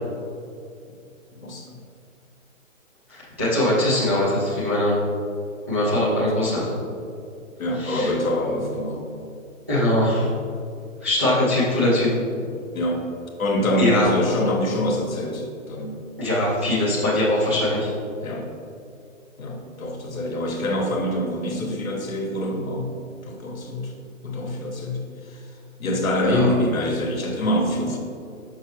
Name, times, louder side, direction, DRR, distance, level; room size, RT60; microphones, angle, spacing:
voice 1, 1.4-1.8 7.6-9.1 12.7-13.0 13.4-16.0 17.5-17.6 18.2-18.5 19.4-22.9 23.2-23.9 24.2-25.4 25.8-28.0, left 1 dB, 80° left, 2 dB, 1.2 m, -25 dB
voice 2, 3.1-4.9 5.7-6.7 7.8-8.1 9.7-10.3 11.0-12.1 13.8-14.1 16.2-17.9 26.2-26.5, left 1 dB, 10° right, -10 dB, 0.3 m, -21 dB
5.9 x 5.6 x 3.0 m, 2.4 s
hypercardioid pair, 135°, 41 cm